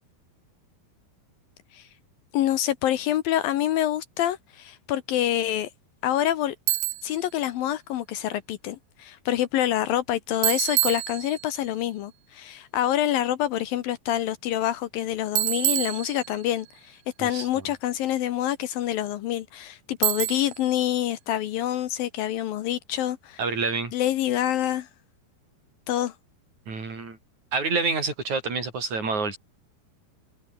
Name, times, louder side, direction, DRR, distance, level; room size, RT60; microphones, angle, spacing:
voice 1, 2.3-5.7 6.0-6.6 7.0-23.4 23.9-24.9 25.9-26.1, left 12 dB, 70° left, 2.4 m, -26 dB
Bicycle, 6.7-7.2 10.4-11.7 15.4-16.6 20.0-20.7, right 18 dB, 85° right, 2.9 m, -27 dB
voice 2, 23.4-23.9 26.7-27.2 27.5-29.4, right 4 dB, 45° right, 7.5 m, -27 dB
omnidirectional pair, 4.9 m